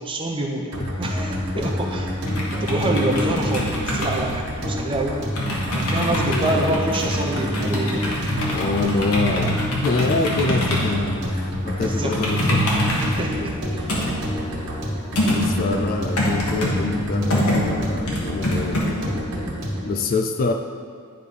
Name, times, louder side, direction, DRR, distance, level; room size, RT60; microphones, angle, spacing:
voice 1, 0.0-0.7 1.0-2.2 2.5-5.2 5.7-8.1 11.8-12.1 13.0-13.9, right 1 dB, 25° right, 0 dB, 0.7 m, -26 dB
sound 1, 0.7-19.9, equal, 75° right, 1.7 m, -27 dB
sound 2, 1.1-18.8, equal, 80° left, 1.4 m, -26 dB
voice 2, 6.3-6.9 8.5-12.6 13.8-13.9 15.2-19.0 19.8-20.5, left 3 dB, 40° left, 5 dB, 0.3 m, -25 dB
9.8 x 3.3 x 5.3 m, 2.1 s
head